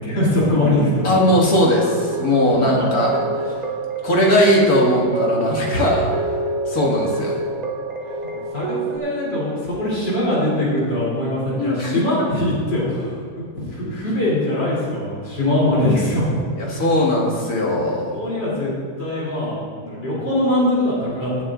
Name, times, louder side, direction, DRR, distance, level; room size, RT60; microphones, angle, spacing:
voice 1, 0.0-1.1 2.6-2.8 8.3-16.3 17.9-18.7 19.0-21.4, left 1 dB, 90° left, -7 dB, 3.8 m, -22 dB
voice 2, 1.0-3.2 3.5-3.6 4.0-6.1 6.7-7.4 11.5-12.0 16.6-18.3, left 1 dB, 55° left, -3 dB, 2.4 m, -19 dB
sound 1, 1.1-9.0, right 3 dB, 65° right, 0.4 m, -26 dB
17.5 x 8.9 x 2.5 m, 2.3 s
omnidirectional pair, 1.8 m